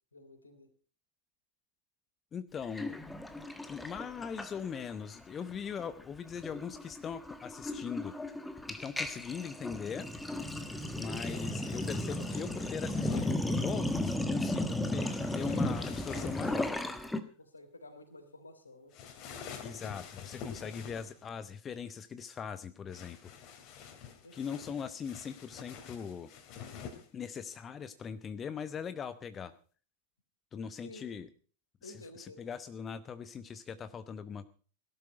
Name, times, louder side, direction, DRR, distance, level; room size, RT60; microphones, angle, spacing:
voice 1, 0.1-0.7 17.4-18.9 24.2-24.6 30.8-31.2 31.8-32.4, left 2 dB, 80° left, 8 dB, 3.1 m, -52 dB
voice 2, 2.3-3.0 3.7-8.1 8.7-10.1 10.9-16.7 19.6-23.3 24.3-26.3 27.1-29.5 30.5-31.3 31.8-34.5, left 7 dB, 25° left, 13 dB, 0.9 m, -40 dB
Sink (filling or washing), 2.7-5.0 5.2-5.5 5.8-17.2, left 1 dB, 5° left, 1.5 m, -35 dB
sound 1, 11.2-13.4 14.9-16.8 18.9-21.2 22.9-27.1, left 7 dB, 40° left, 2.9 m, -47 dB
17.5 x 12.0 x 5.2 m, 0.42 s
figure-of-eight pair, 90°, 0 cm